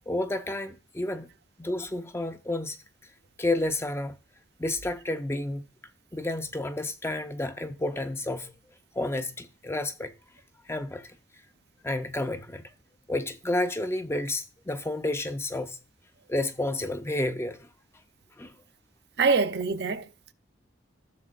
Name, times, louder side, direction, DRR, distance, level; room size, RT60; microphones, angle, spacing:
voice 1, 0.1-1.3 1.6-2.8 3.4-4.1 4.6-5.6 6.1-8.5 8.9-10.1 10.7-11.1 11.8-12.6 13.1-15.8 16.3-17.7 18.4-18.5, left 1 dB, 15° left, 0.5 m, -30 dB
voice 2, 19.2-20.3, right 4 dB, 60° right, 0.6 m, -25 dB
13.5 x 6.6 x 2.4 m
head